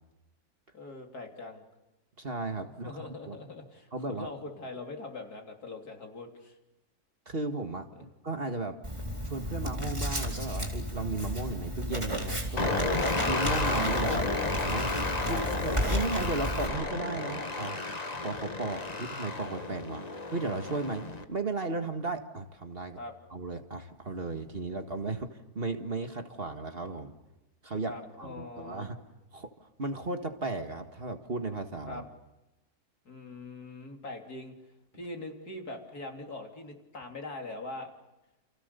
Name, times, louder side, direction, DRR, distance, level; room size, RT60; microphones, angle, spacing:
voice 1, 0.7-1.6 2.8-6.5 14.1-14.2 15.2-15.4 23.0-23.1 27.9-28.9 31.9-32.0 33.1-34.5 34.9-37.9, left 2 dB, 80° left, 3 dB, 3.9 m, -42 dB
voice 2, 2.2-3.0 3.3-3.4 3.9-4.3 7.3-8.8 9.2-12.9 13.2-14.9 15.3-17.8 18.2-23.0 23.3-27.2 27.6-29.0 29.3-29.5 29.8-32.1, right 3 dB, 40° right, 6 dB, 2.0 m, -35 dB
Writing, 8.8-16.7, equal, 20° right, 4.2 m, -33 dB
sound 1, 12.6-21.2, left 3 dB, 25° left, 1.7 m, -32 dB
29.5 x 29.5 x 6.9 m, 1.0 s
omnidirectional pair, 1.6 m